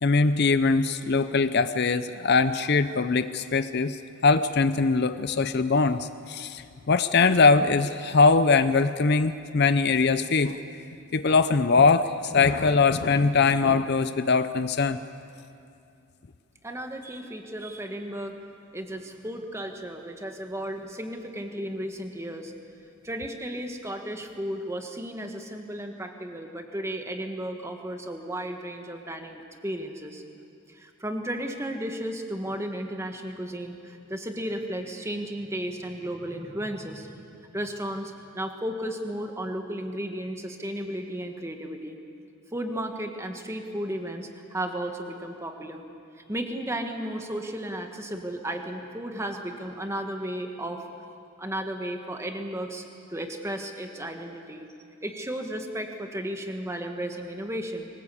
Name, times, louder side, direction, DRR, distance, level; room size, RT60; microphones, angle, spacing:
voice 1, 0.0-10.6 11.1-15.0, left 4 dB, 50° left, 11 dB, 0.6 m, -22 dB
voice 2, 16.6-18.4 18.7-22.5 23.0-30.2 30.7-42.0 42.5-45.8 46.1-50.8 51.4-52.8 53.1-54.6 55.0-57.9, right 1 dB, 10° right, 4 dB, 1.5 m, -34 dB
23.0 x 20.0 x 8.4 m, 2.5 s
head